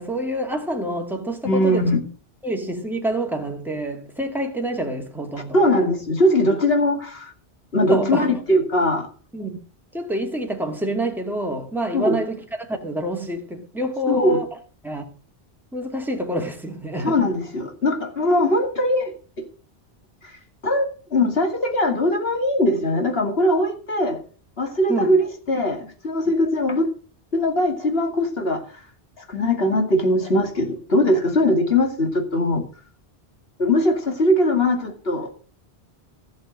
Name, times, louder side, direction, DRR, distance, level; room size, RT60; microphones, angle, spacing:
voice 1, 0.0-1.8 2.4-5.6 7.9-8.3 9.3-9.6 9.9-14.5 14.8-15.0 15.7-17.1 24.9-25.1, right 1 dB, ahead, 2.3 m, -27 dB
voice 2, 1.4-2.0 5.5-7.3 7.7-9.1 11.9-12.2 14.1-14.4 17.0-19.1 20.2-24.2 24.6-26.9 27.3-28.8 29.2-32.6 33.6-35.3, left 1 dB, 65° left, 2.7 m, -21 dB
16.0 x 6.3 x 6.3 m
omnidirectional pair, 1.1 m